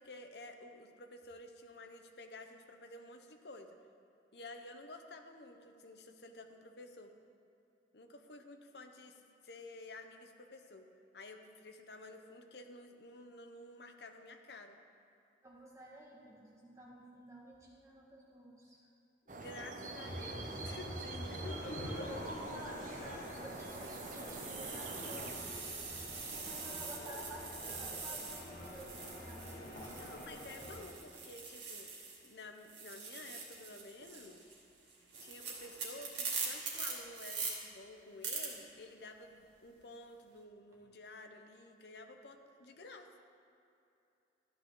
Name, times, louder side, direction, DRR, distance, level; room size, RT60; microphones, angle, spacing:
voice 1, 0.0-3.8 4.3-7.1 7.9-10.9 11.1-14.8 19.3-21.8 30.0-31.9 32.2-34.4 35.2-43.1, left 2 dB, 60° left, 5 dB, 0.9 m, -52 dB
voice 2, 15.4-18.8 21.8-25.5 26.0-29.9, right 1 dB, 15° right, -4 dB, 1.8 m, -52 dB
sound 1, 19.3-25.3, right 2 dB, 45° right, 0.8 m, -46 dB
sound 2, 20.0-30.8, left 1 dB, 45° left, 1.8 m, -46 dB
sound 3, 22.2-32.3 32.6-37.5 38.2-38.5, right 5 dB, 70° right, 2.5 m, -44 dB
13.0 x 10.0 x 3.9 m, 2.7 s
head